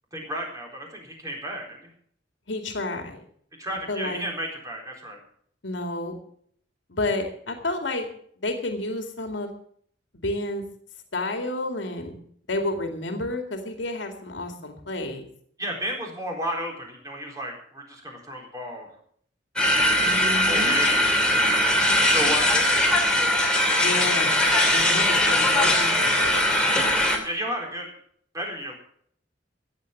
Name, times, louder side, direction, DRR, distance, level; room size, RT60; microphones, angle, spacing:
voice 1, 0.1-1.9 3.6-5.2 15.6-18.9 20.3-21.5 22.1-22.8 27.2-27.9 28.3-28.7, equal, 20° right, 0 dB, 4.1 m, -33 dB
voice 2, 2.5-3.3 3.9-4.3 5.6-6.1 6.9-8.1 8.4-9.5 10.1-10.6 11.1-12.1 12.5-15.2 20.0-20.8 23.7-24.4 24.7-26.4, left 2 dB, 80° left, 4 dB, 2.2 m, -30 dB
sound 1, 19.6-27.2, left 1 dB, 5° left, 2.6 m, -20 dB
15.5 x 8.2 x 7.2 m, 0.62 s
head